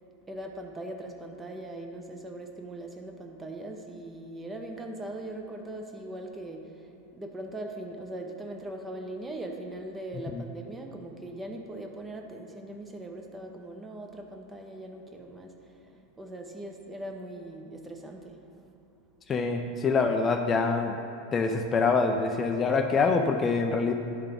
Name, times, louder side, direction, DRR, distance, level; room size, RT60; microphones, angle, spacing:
voice 1, 0.3-18.4, right 1 dB, 15° right, 3 dB, 0.7 m, -40 dB
voice 2, 19.3-21.0 21.3-23.9, left 4 dB, 25° left, 4 dB, 0.4 m, -25 dB
11.0 x 3.7 x 3.4 m, 2.7 s
hypercardioid pair, 120°, 0 cm